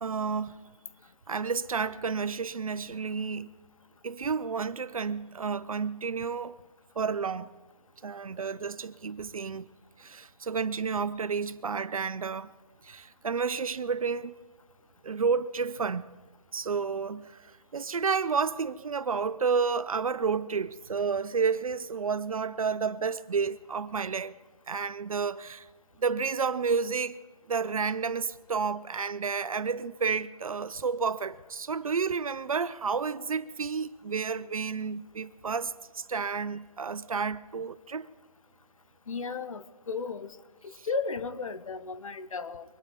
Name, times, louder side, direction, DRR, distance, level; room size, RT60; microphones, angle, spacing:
voice 1, 0.0-0.5 1.3-3.5 4.0-6.6 7.0-7.5 8.0-9.7 10.0-12.5 12.8-14.3 15.0-16.1 16.5-17.5 17.7-24.3 24.7-25.7 26.0-27.2 27.5-38.1 40.7-40.9, right 5 dB, 70° right, 0.6 m, -31 dB
voice 2, 39.1-40.3 40.8-42.6, left 4 dB, 65° left, 1.0 m, -34 dB
23.5 x 9.5 x 5.3 m
figure-of-eight pair, 160°, 19 cm